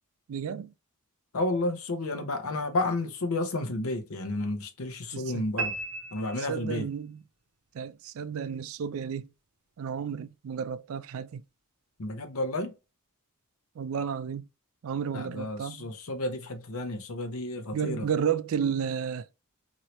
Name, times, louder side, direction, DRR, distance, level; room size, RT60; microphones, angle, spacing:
voice 1, 0.3-0.7 5.1-5.4 6.4-7.2 7.7-9.3 9.8-11.4 13.8-14.5 14.8-15.9 17.7-19.3, right 7 dB, 65° right, 0.3 m, -32 dB
voice 2, 1.3-5.7 6.1-6.8 12.0-12.7 15.1-18.1, left 2 dB, 70° left, 0.8 m, -31 dB
sound 1, 5.6-7.1, right 3 dB, 85° right, 0.7 m, -35 dB
2.9 x 2.7 x 3.0 m
head